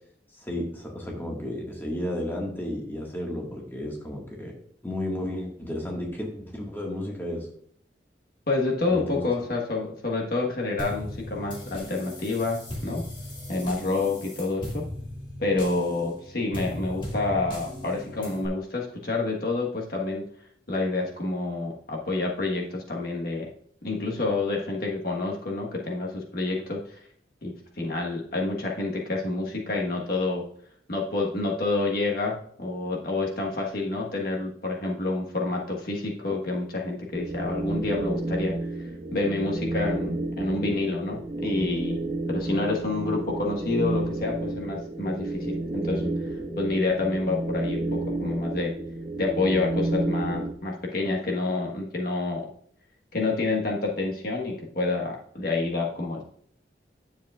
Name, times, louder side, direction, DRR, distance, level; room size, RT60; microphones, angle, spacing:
voice 1, 0.4-4.5 4.8-7.5 8.9-9.2, left 1 dB, 10° left, -1 dB, 1.6 m, -33 dB
voice 2, 8.5-13.0 13.5-14.8 15.4-20.3 20.7-23.4 23.8-27.0 27.4-30.4 30.9-38.6 39.1-42.0 42.3-46.1 46.6-48.7 49.2-52.5 53.1-56.2, left 3 dB, 55° left, -1 dB, 1.3 m, -28 dB
sound 1, 10.8-18.5, left 1 dB, 25° left, 2.0 m, -38 dB
sound 2, 37.1-50.5, right 2 dB, 40° right, 1.4 m, -31 dB
10.0 x 7.2 x 2.4 m, 0.63 s
head